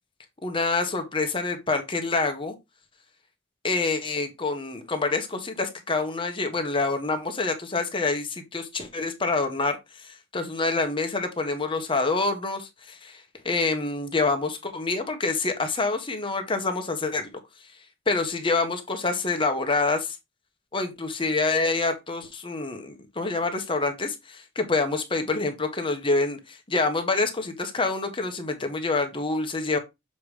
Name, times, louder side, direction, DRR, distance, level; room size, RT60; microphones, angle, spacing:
voice 1, 0.4-2.5 3.6-17.3 18.1-20.2 20.7-29.8, left 3 dB, 25° left, 1.1 m, -27 dB
7.0 x 3.2 x 4.9 m
head